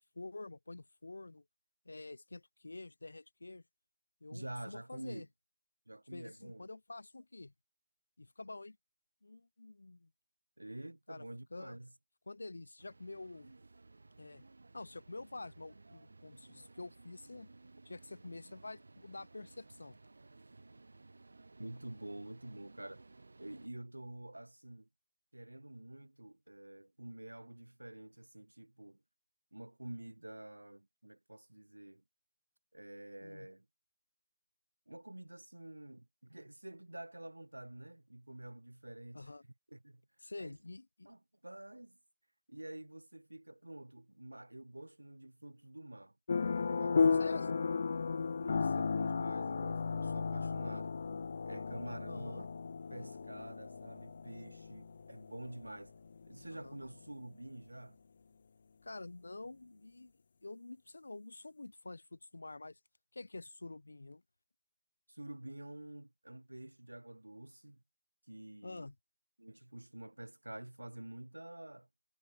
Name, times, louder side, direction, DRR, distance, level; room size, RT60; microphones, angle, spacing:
voice 1, 0.0-1.4 1.8-3.6 4.2-5.3 6.1-7.5 8.2-8.8 9.2-10.1 11.1-11.3 11.5-11.8 12.3-13.5 14.2-14.4 14.7-17.5 17.8-20.0 33.2-33.5 39.1-39.5 40.2-41.1 47.2-47.6 50.4-50.5 52.1-52.5 56.5-56.8 58.8-60.1 60.4-62.8 63.1-64.2 68.6-68.9, left 2 dB, 75° left, 3.2 m, -48 dB
voice 2, 4.3-5.3 5.9-6.7 10.6-11.9 21.6-23.0 23.4-24.9 25.3-29.0 29.5-32.0 32.7-33.7 34.9-39.3 39.7-40.0 40.4-40.6 41.1-42.0 42.5-46.1 46.6-47.5 48.4-50.9 51.4-52.5 52.9-55.9 56.3-58.0 65.1-67.8 68.3-68.9 69.4-71.9, right 1 dB, 85° right, 1.7 m, -48 dB
sound 1, 12.8-23.7, right 3 dB, 70° right, 4.2 m, -59 dB
sound 2, 46.3-57.0, left 5 dB, 55° left, 0.5 m, -35 dB
figure-of-eight pair, 150°, 0 cm